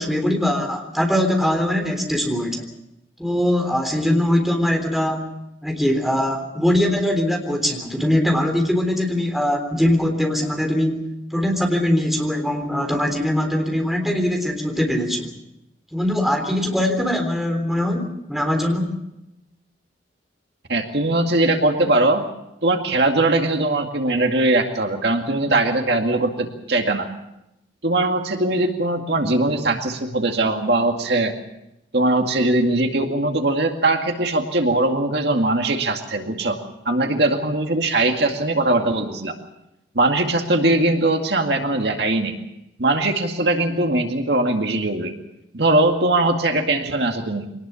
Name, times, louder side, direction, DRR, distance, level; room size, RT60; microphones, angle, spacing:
voice 1, 0.0-2.6 3.2-5.2 5.6-11.1 11.3-15.3 15.9-19.0, left 1 dB, ahead, 3 dB, 3.7 m, -21 dB
voice 2, 20.7-22.2 22.6-27.1 27.8-31.3 31.9-36.6 36.9-39.4 40.0-42.3 42.8-45.1 45.5-47.5, right 2 dB, 60° right, 4 dB, 2.2 m, -20 dB
24.5 x 19.5 x 7.1 m, 0.87 s
head